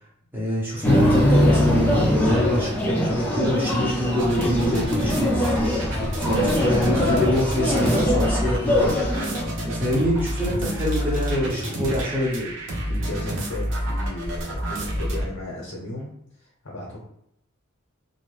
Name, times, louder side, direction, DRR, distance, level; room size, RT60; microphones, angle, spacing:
voice 1, 0.3-9.2 9.6-12.5, left 1 dB, 10° right, -8 dB, 1.1 m, -25 dB
sound 1, 0.8-9.4, equal, 10° left, 0.7 m, -22 dB
sound 2, 4.2-15.3, equal, 65° right, 0.7 m, -29 dB
voice 2, 6.1-6.5 10.5-10.8 11.7-11.9 12.8-17.0, left 1 dB, 70° left, -3 dB, 0.7 m, -36 dB
Camera, 7.8-8.1 9.2-9.4 10.7-12.1 12.6-12.8, right 2 dB, 40° right, 1.0 m, -41 dB
2.7 x 2.2 x 3.2 m, 0.74 s
head